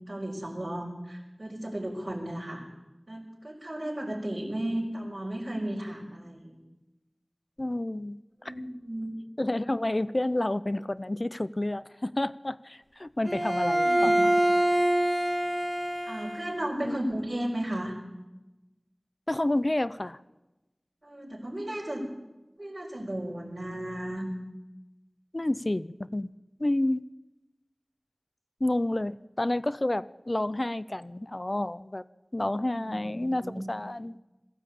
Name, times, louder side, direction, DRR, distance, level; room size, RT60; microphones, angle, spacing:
voice 1, 0.1-2.6 3.1-6.6 8.4-9.1 13.8-14.3 16.0-17.9 21.0-22.1 22.6-24.2 32.7-33.7, right 1 dB, 65° right, -5 dB, 4.7 m, -34 dB
voice 2, 7.6-8.2 9.4-14.3 16.8-17.0 19.3-20.2 25.3-26.3 26.6-27.0 28.6-32.0 32.3-34.2, left 1 dB, 50° left, 16 dB, 0.6 m, -29 dB
Bowed string instrument, 13.3-16.7, right 1 dB, 20° right, 2.4 m, -25 dB
21.5 x 15.0 x 8.4 m, 1.1 s
wide cardioid pair, 40°, 0 cm